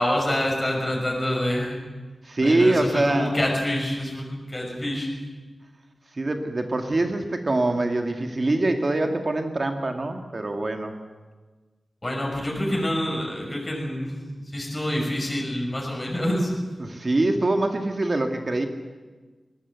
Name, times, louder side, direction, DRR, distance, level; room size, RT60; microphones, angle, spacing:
voice 1, 0.0-1.8 2.4-5.1 12.0-16.5, left 1 dB, 20° left, -1 dB, 5.8 m, -27 dB
voice 2, 2.2-3.3 6.2-11.0 16.8-18.7, right 2 dB, 40° right, 5 dB, 1.7 m, -24 dB
21.0 x 19.0 x 8.3 m, 1.3 s
wide cardioid pair, 110°, 0 cm